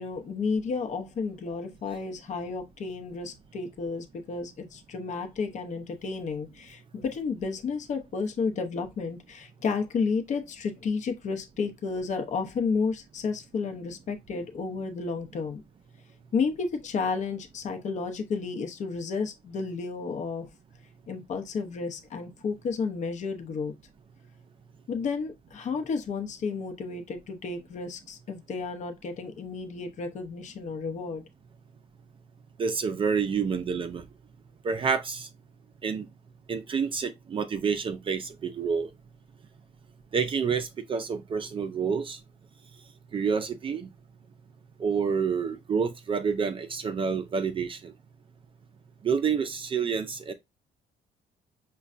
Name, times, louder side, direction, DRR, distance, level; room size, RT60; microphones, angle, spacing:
voice 1, 0.0-15.6 16.3-20.5 21.1-23.7 24.9-31.2, left 4 dB, 45° left, 0.7 m, -32 dB
voice 2, 32.6-34.0 34.6-35.3 35.8-36.1 36.5-38.9 40.1-42.2 43.1-43.9 44.8-47.9 49.0-50.3, right 6 dB, 30° right, 0.4 m, -28 dB
5.2 x 2.2 x 2.5 m
cardioid pair, 110°, 17 cm